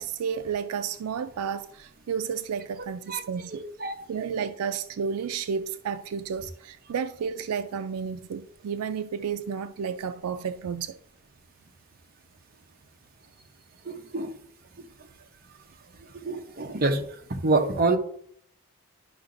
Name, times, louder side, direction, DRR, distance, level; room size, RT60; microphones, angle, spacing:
voice 1, 0.0-3.6 4.1-11.0, right 6 dB, 80° right, 0.4 m, -32 dB
voice 2, 3.5-3.9 13.9-14.4 16.1-17.0 17.3-18.0, right 3 dB, 40° right, 0.7 m, -26 dB
11.0 x 5.7 x 2.6 m
head